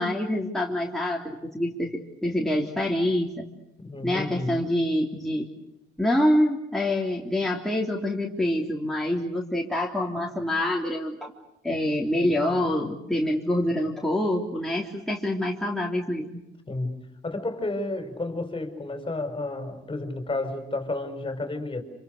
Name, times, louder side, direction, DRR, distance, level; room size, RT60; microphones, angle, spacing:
voice 1, 0.0-3.5 4.0-5.5 6.0-11.3 11.6-16.4, left 1 dB, ahead, -2 dB, 3.4 m, -26 dB
voice 2, 3.8-4.6 16.7-21.8, left 2 dB, 25° left, 7 dB, 5.0 m, -31 dB
27.0 x 26.5 x 6.7 m, 0.86 s
cardioid pair, 90°, 20 cm